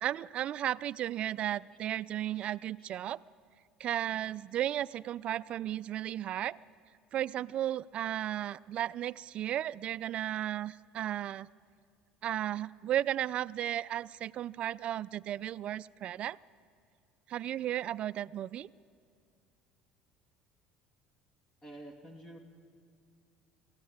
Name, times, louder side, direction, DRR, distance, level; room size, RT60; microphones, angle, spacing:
voice 1, 0.0-3.2 3.8-6.6 7.1-11.5 12.2-16.4 17.3-18.7, right 12 dB, 50° right, 18 dB, 0.5 m, -34 dB
voice 2, 21.6-22.4, right 1 dB, 25° left, 3 dB, 2.5 m, -50 dB
23.0 x 16.0 x 8.9 m, 2.2 s
supercardioid pair, 105°, 2 cm